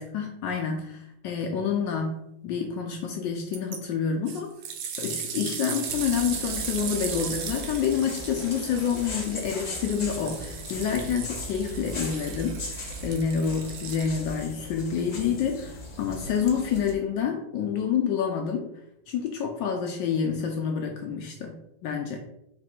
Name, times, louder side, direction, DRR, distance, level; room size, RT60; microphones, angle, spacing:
voice 1, 0.0-4.5 5.0-18.7 19.1-22.2, left 7 dB, 75° left, 2 dB, 1.2 m, -28 dB
sound 1, 3.5-3.8 4.3-14.4 15.2-15.3, right 7 dB, 80° right, 1.4 m, -37 dB
sound 2, 5.9-16.9, left 1 dB, 45° left, 1.0 m, -38 dB
4.0 x 3.0 x 4.4 m, 0.82 s
omnidirectional pair, 2.1 m